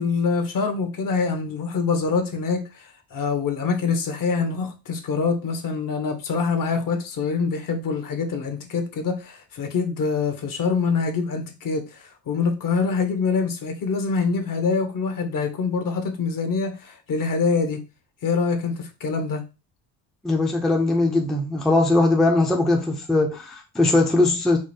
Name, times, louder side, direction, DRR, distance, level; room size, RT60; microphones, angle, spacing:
voice 1, 0.0-17.8 18.2-19.4, left 4 dB, 45° left, 1.0 m, -25 dB
voice 2, 20.2-24.6, left 2 dB, ahead, 0.6 m, -20 dB
4.8 x 2.0 x 4.3 m
cardioid pair, 105°, 45 cm